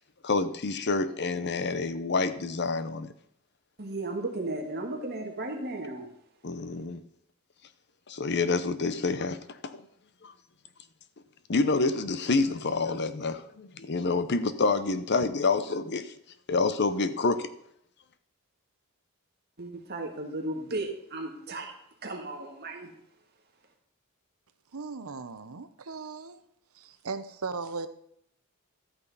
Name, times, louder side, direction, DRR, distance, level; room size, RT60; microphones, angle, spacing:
voice 1, 0.2-3.1 6.4-7.0 8.1-9.7 10.2-10.3 11.5-16.1 16.5-17.5, left 3 dB, 50° left, 12 dB, 0.8 m, -28 dB
voice 2, 3.8-6.1 19.6-21.7 22.0-22.9, right 2 dB, 50° right, 2 dB, 1.8 m, -35 dB
voice 3, 24.7-26.4 26.7-27.9, right 4 dB, 80° right, 11 dB, 0.9 m, -37 dB
12.5 x 8.8 x 4.1 m, 0.74 s
head